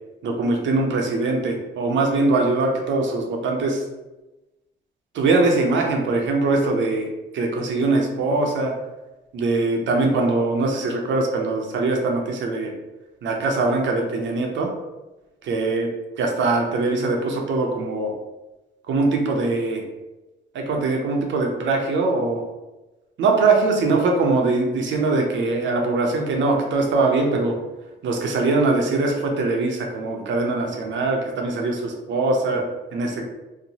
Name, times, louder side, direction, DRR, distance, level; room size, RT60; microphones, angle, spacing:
voice 1, 0.2-3.8 5.1-7.1 7.3-8.7 9.3-12.7 13.2-14.7 15.4-15.9 16.2-18.1 18.9-19.8 20.5-22.4 23.2-27.6 28.0-32.6 32.9-33.3, right 3 dB, 70° right, 2 dB, 0.6 m, -22 dB
2.9 x 2.1 x 2.7 m, 1.1 s
cardioid pair, 90°, 20 cm